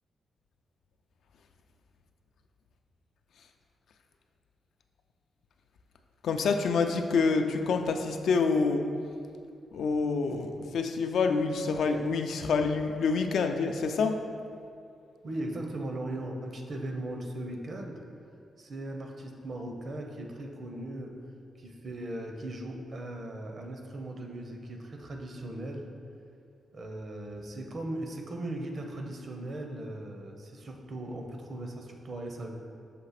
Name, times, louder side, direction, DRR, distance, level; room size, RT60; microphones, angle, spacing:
voice 1, 6.2-8.8 9.7-14.2, left 4 dB, 75° left, 5 dB, 0.4 m, -27 dB
voice 2, 15.2-18.0 18.6-21.2 21.6-25.9 26.7-32.5, right 1 dB, 45° right, 2 dB, 0.7 m, -38 dB
5.9 x 3.2 x 5.7 m, 2.4 s
wide cardioid pair, 130°, 0 cm